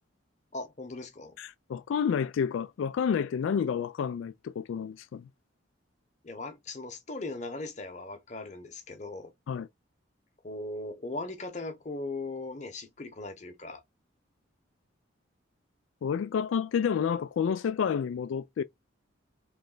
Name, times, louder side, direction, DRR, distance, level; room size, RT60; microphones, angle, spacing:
voice 1, 0.5-1.4 6.2-9.3 10.4-13.8, left 2 dB, 35° left, 0.9 m, -39 dB
voice 2, 1.4-5.3 9.5-9.7 16.0-18.6, left 7 dB, 80° left, 0.3 m, -29 dB
3.3 x 3.1 x 3.9 m
head